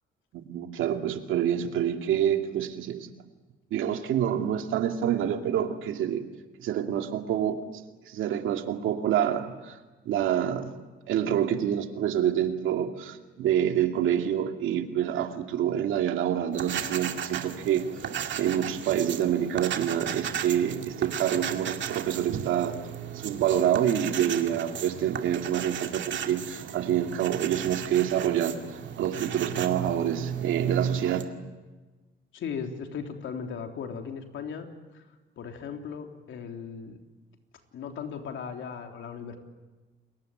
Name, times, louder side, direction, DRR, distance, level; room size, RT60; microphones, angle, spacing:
voice 1, 0.3-3.1 3.7-6.2 6.6-9.8 10.1-10.7 11.1-17.8 18.3-22.8 23.1-31.3, right 10 dB, 85° right, 5 dB, 2.4 m, -27 dB
sound 1, 16.5-31.2, right 8 dB, 70° right, 2.3 m, -35 dB
voice 2, 32.3-34.7 34.9-35.0 35.4-37.0 37.7-39.4, left 6 dB, 75° left, 4 dB, 3.5 m, -37 dB
29.5 x 21.5 x 9.1 m, 1.2 s
cardioid pair, 90°, 20 cm